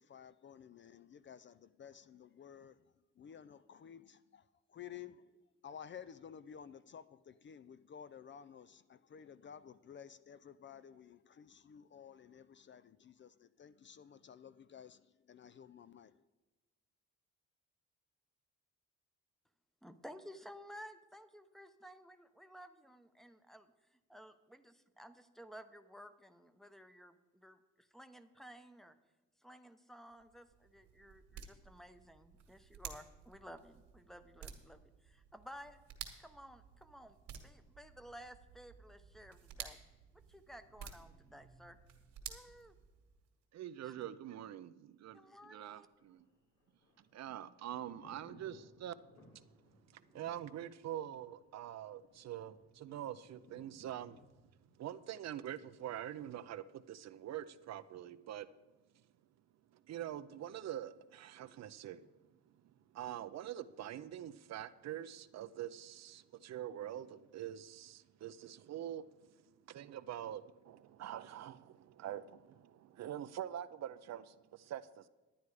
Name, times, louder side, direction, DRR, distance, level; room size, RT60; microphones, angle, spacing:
voice 1, 0.0-2.8 3.2-5.3 5.6-16.2, left 8 dB, 40° left, 0.4 m, -54 dB
voice 2, 19.8-29.0 29.4-35.8 36.2-39.8 40.1-41.8 42.3-42.7 43.8-44.0 45.1-45.9, equal, ahead, 0.8 m, -55 dB
sound 1, 30.1-43.3, right 8 dB, 80° right, 1.8 m, -53 dB
voice 3, 43.5-46.3 47.1-48.9 49.3-49.4 49.9-54.2 54.7-58.5 59.7-62.1 62.5-75.1, right 11 dB, 60° right, 0.6 m, -45 dB
Thunder, 44.9-55.8 56.1-56.2, equal, 75° left, 4.4 m, -65 dB
11.5 x 9.3 x 4.8 m
cardioid pair, 90°, 30 cm